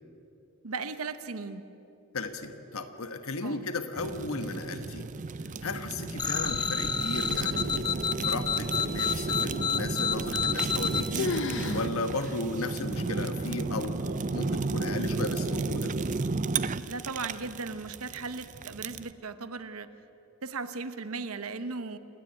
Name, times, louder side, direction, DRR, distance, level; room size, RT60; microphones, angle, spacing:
voice 1, 0.6-1.6 3.4-3.6 16.9-19.9 20.4-22.0, right 4 dB, 85° right, 11 dB, 1.0 m, -37 dB
voice 2, 2.1-5.1 5.6-7.9 8.2-11.3 11.7-15.9, left 2 dB, 80° left, 8 dB, 1.3 m, -35 dB
Fire, 4.0-19.1, right 3 dB, 35° right, 0.5 m, -33 dB
sound 1, 6.2-11.0, left 6 dB, 20° left, 0.6 m, -29 dB
sound 2, 10.4-10.9 11.2-11.9 12.2-12.3 13.0-13.1 13.8-14.2, left 4 dB, 60° left, 0.8 m, -32 dB
27.5 x 10.0 x 9.5 m, 3.0 s
head